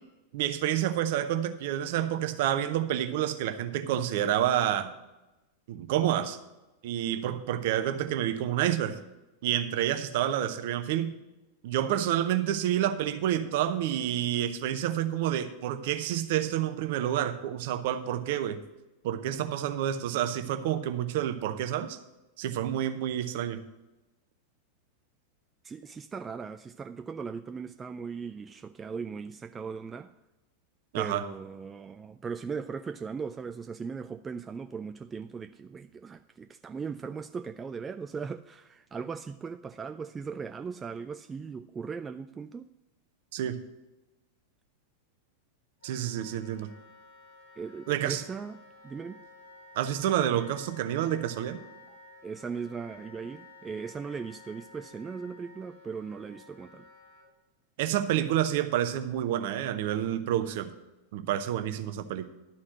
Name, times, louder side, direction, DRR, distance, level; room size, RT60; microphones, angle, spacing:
voice 1, 0.3-4.9 5.7-6.4 6.8-9.0 9.4-11.1 11.6-18.6 19.0-22.0 22.4-23.6 30.9-31.2 43.3-43.6 45.8-46.7 47.9-48.2 49.8-51.6 57.8-60.7 61.1-62.3, right 11 dB, 50° right, 10 dB, 0.7 m, -29 dB
voice 2, 25.6-30.1 30.9-42.7 47.6-48.6 48.8-49.2 51.9-52.0 52.2-56.9, right 5 dB, 15° right, 9 dB, 0.3 m, -38 dB
Wind instrument woodwind instrument, 45.8-57.2, left 3 dB, 75° left, 3.8 m, -53 dB
11.5 x 4.3 x 7.6 m, 1.0 s
figure-of-eight pair, 90°, 0 cm